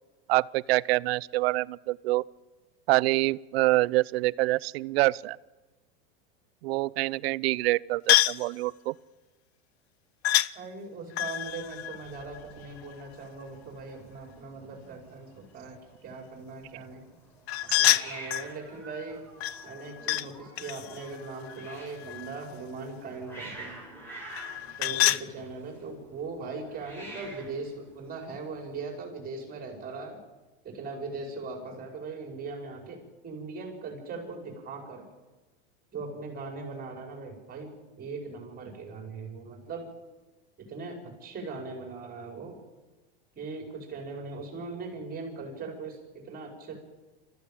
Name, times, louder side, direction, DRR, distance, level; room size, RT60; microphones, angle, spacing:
voice 1, 0.3-2.2 2.9-5.4 6.6-8.9 10.3-10.4, right 20 dB, 70° right, 21 dB, 0.6 m, -26 dB
sound 1, 8.1-8.5 10.2-10.5 11.1-12.9 17.5-18.5 19.4-20.3 20.6-22.5 24.3-25.3, left 15 dB, 80° left, 0.8 m, -27 dB
voice 2, 10.5-17.1 17.6-19.2 19.6-23.8 24.8-30.2 30.6-35.1 35.9-39.9 40.6-42.6 43.4-46.8, right 3 dB, 30° right, 1 dB, 5.4 m, -40 dB
Hiss, 11.4-28.8, right 1 dB, 5° left, 6.7 m, -49 dB
25.0 x 14.5 x 8.9 m, 1.2 s
supercardioid pair, 130°, 31 cm